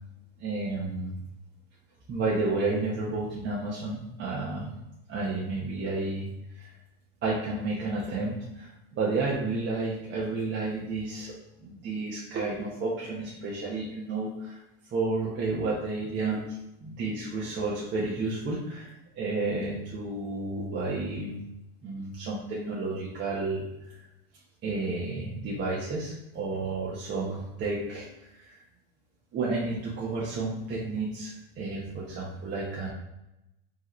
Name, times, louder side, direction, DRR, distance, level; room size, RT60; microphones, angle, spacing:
voice 1, 0.4-1.2 2.1-4.7 5.1-6.8 7.2-11.3 11.6-21.4 21.8-24.0 24.6-28.6 29.3-32.9, right 3 dB, 35° right, -5 dB, 1.0 m, -31 dB
4.5 x 3.1 x 3.1 m, 0.91 s
hypercardioid pair, 100°, 30 cm